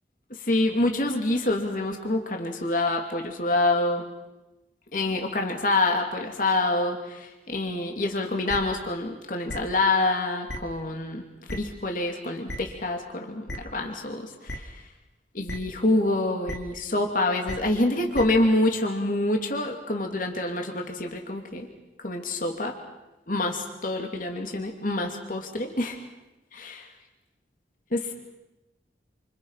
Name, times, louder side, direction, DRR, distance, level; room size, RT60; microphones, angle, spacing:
voice 1, 0.5-4.0 4.9-11.2 11.5-14.7 15.3-21.7 22.0-22.7 23.3-26.0 26.5-26.9 27.9-28.1, left 2 dB, 50° left, 3 dB, 2.9 m, -26 dB
sound 1, 8.5-8.6 9.5-9.6 10.5-10.6 11.5-11.6 12.5-12.6 13.5-13.6 14.5-14.6 15.5-15.6 16.5-16.6 17.5-17.6 18.1-18.2, left 1 dB, 85° left, 2.8 m, -33 dB
29.5 x 27.5 x 5.8 m, 1.0 s
head